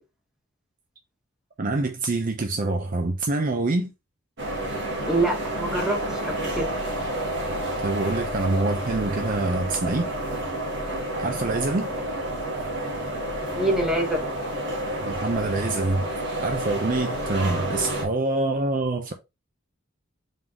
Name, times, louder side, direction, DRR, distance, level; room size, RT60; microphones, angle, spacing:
voice 1, 1.6-3.9 7.8-10.1 11.2-11.9 15.0-16.0 16.4-19.1, right 2 dB, 40° right, 0.5 m, -25 dB
sound 1, 4.4-18.1, right 1 dB, 55° right, 1.4 m, -30 dB
voice 2, 5.0-6.7 13.4-14.3, right 1 dB, 5° right, 1.1 m, -26 dB
3.8 x 3.7 x 2.9 m
head